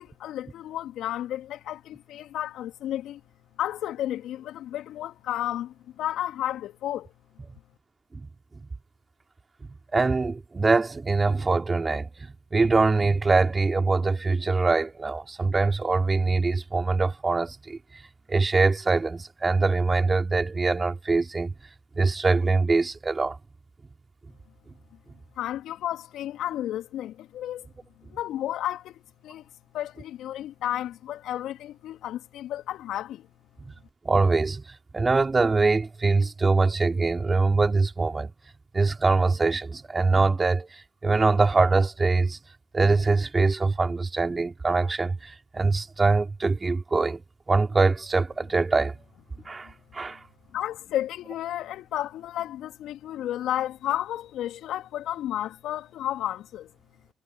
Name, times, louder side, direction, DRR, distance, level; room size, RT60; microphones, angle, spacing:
voice 1, 0.0-3.2 3.6-7.1 25.4-27.7 28.1-29.5 29.7-33.3 49.6-49.7 50.5-56.7, left 12 dB, 70° left, 2.9 m, -32 dB
voice 2, 9.9-17.8 18.3-21.5 22.0-23.4 34.1-34.6 34.9-38.3 38.7-40.7 41.0-42.4 42.7-47.2 47.5-48.9 49.5-50.2, right 3 dB, 30° right, 3.4 m, -23 dB
hypercardioid pair, 50°, 0 cm